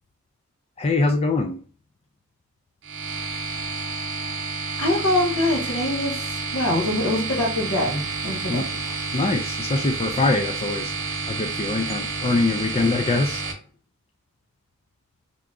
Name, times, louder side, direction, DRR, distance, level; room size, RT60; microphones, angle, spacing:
voice 1, 0.8-1.6 8.5-8.6 9.1-13.5, left 3 dB, 25° left, 3 dB, 0.3 m, -23 dB
sound 1, 2.8-13.5, right 4 dB, 55° right, 0.8 m, -30 dB
voice 2, 4.8-6.1 6.5-8.6, left 1 dB, 75° left, 1 dB, 1.1 m, -23 dB
3.4 x 2.9 x 2.5 m, 0.41 s
head